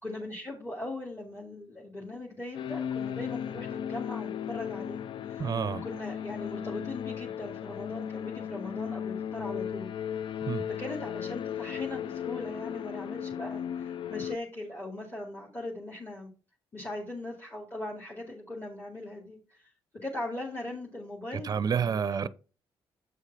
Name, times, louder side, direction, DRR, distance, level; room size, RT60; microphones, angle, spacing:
voice 1, 0.0-5.5 5.8-9.9 10.7-16.3 16.7-19.7 20.0-22.3, left 2 dB, 20° left, 2.2 m, -40 dB
sound 1, 2.5-14.4, left 9 dB, 60° left, 0.3 m, -36 dB
voice 2, 5.4-5.8 10.4-10.6 21.3-22.3, right 7 dB, 40° right, 0.5 m, -29 dB
7.9 x 5.0 x 3.9 m
cardioid pair, 75°, 9 cm